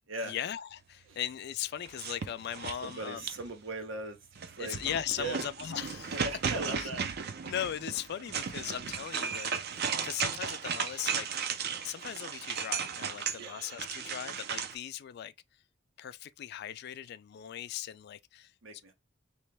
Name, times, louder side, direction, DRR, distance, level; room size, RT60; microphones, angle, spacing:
voice 1, 0.2-3.3 4.6-6.2 6.8-6.9 7.5-9.5 10.0-11.3 11.8-15.3 16.0-18.5, left 10 dB, 55° left, 0.3 m, -38 dB
sound 1, 1.8-3.6 4.3-14.7, right 6 dB, 55° right, 0.5 m, -36 dB
voice 2, 2.8-4.8 5.2-5.4 6.1-7.1 13.4-13.7 18.6-18.9, right 2 dB, 85° right, 1.0 m, -39 dB
3.1 x 3.0 x 3.3 m
head